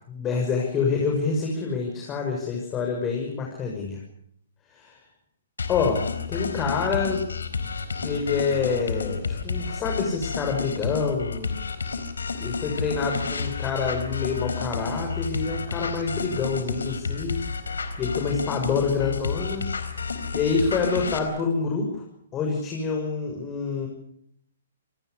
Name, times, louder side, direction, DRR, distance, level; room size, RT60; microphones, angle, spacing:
voice 1, 0.1-4.0 4.7-5.0 5.7-6.0 6.3-7.2 8.0-11.5 12.4-17.4 17.7-19.7 20.0-22.0 22.3-23.9, left 5 dB, 20° left, 1 dB, 6.5 m, -27 dB
sound 1, 5.6-21.2, left 5 dB, 85° left, 4.3 m, -30 dB
28.5 x 19.0 x 6.8 m, 0.68 s
hypercardioid pair, 135°, 0 cm